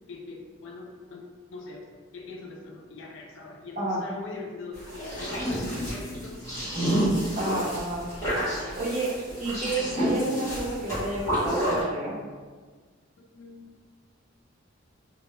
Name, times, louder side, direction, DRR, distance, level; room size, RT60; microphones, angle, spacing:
voice 1, 0.1-1.2 1.5-1.8 2.1-6.4 8.5-8.8 13.2-13.7, left 3 dB, 65° left, 0 dB, 0.4 m, -42 dB
sound 1, 4.7-11.8, equal, 15° left, 0.7 m, -29 dB
voice 2, 7.4-8.0 8.8-9.1 9.4-12.1, right 2 dB, 35° right, -5 dB, 0.4 m, -30 dB
2.1 x 2.0 x 2.9 m, 1.5 s
head